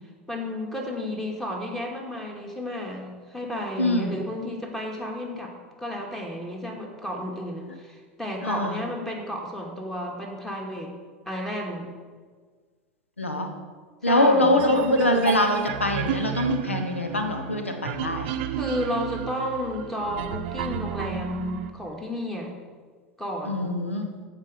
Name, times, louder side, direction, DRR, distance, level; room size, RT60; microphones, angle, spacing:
voice 1, 0.3-5.5 5.8-10.9 11.3-11.9 14.0-14.6 18.6-22.5 23.2-23.7, left 1 dB, 5° left, 0 dB, 2.2 m, -32 dB
voice 2, 3.8-4.2 8.4-8.8 13.2-13.5 14.0-18.3 23.5-24.1, left 1 dB, 90° left, 5 dB, 1.0 m, -23 dB
sound 1, 14.6-21.7, right 10 dB, 60° right, 0.6 m, -32 dB
14.5 x 5.2 x 5.1 m, 1.6 s
figure-of-eight pair, 80°, 7 cm